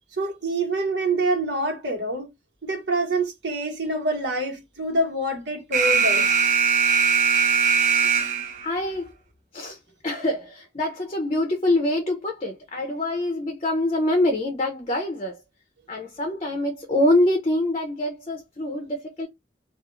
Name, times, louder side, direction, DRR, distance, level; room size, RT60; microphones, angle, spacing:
voice 1, 0.2-2.3 2.6-6.4, right 2 dB, 85° right, 1.2 m, -26 dB
Alarm, 5.7-8.7, right 6 dB, 45° right, 0.4 m, -20 dB
voice 2, 8.6-9.1 9.5-9.8 10.0-15.4 15.9-19.3, left 1 dB, 35° left, 0.5 m, -25 dB
2.4 x 2.4 x 3.0 m
head